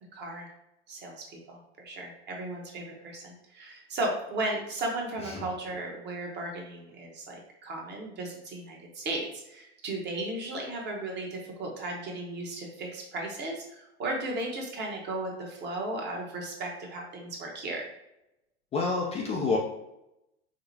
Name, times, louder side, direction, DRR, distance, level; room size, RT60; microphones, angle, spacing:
voice 1, 0.1-0.5 0.9-17.9, right 2 dB, 35° right, 0 dB, 1.1 m, -35 dB
voice 2, 18.7-19.6, left 4 dB, 20° left, -1 dB, 0.4 m, -28 dB
4.8 x 2.1 x 2.8 m, 0.89 s
hypercardioid pair, 95°, 32 cm